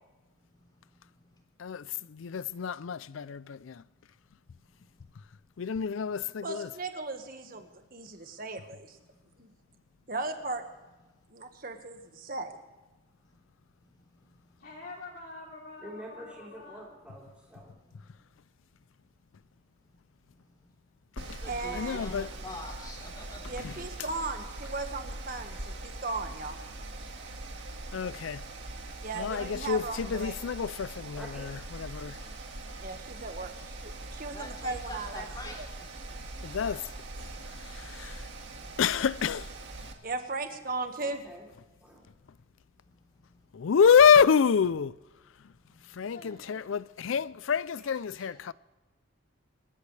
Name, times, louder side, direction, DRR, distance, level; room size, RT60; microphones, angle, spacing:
voice 1, 1.6-3.8 5.6-6.7 21.2-21.4 21.7-22.3 23.6-23.7 27.9-28.4 29.1-32.2 36.4-36.8 37.2-37.3 37.6-38.3 38.8-39.5 43.5-45.0 45.9-48.5, left 6 dB, 85° left, 0.4 m, -27 dB
voice 2, 6.4-9.0 9.4-9.5 10.1-10.6 11.3-12.6 21.5-22.0 23.5-26.6 29.0-30.3 32.8-35.7 40.0-41.2, right 3 dB, 45° right, 1.6 m, -37 dB
voice 3, 14.6-16.8 36.5-36.8 46.0-46.6, left 2 dB, 60° left, 3.5 m, -46 dB
voice 4, 15.8-17.7 31.2-31.5 41.0-41.5 41.8-42.0 47.8-47.9 48.2-48.5, equal, 5° right, 3.9 m, -47 dB
voice 5, 21.2-23.4 34.2-36.0, left 2 dB, 20° left, 3.7 m, -44 dB
Mechanical fan, 21.2-39.9, right 2 dB, 60° right, 1.9 m, -42 dB
26.0 x 13.5 x 3.3 m
head